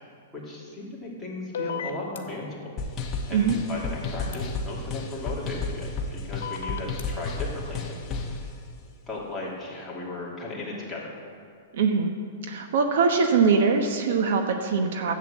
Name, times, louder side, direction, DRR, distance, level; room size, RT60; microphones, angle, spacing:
voice 1, 0.3-2.7 3.3-8.4 9.1-11.2, left 2 dB, 5° left, -7 dB, 2.5 m, -36 dB
sound 1, 1.5-2.2 4.3-4.4 6.4-7.0, left 7 dB, 75° left, 1.2 m, -32 dB
sound 2, 2.8-8.4, left 3 dB, 20° left, 1.2 m, -32 dB
voice 2, 11.7-12.1 12.5-15.1, right 5 dB, 65° right, 5 dB, 1.1 m, -22 dB
11.5 x 8.2 x 7.3 m, 2.3 s
hypercardioid pair, 160°, 0 cm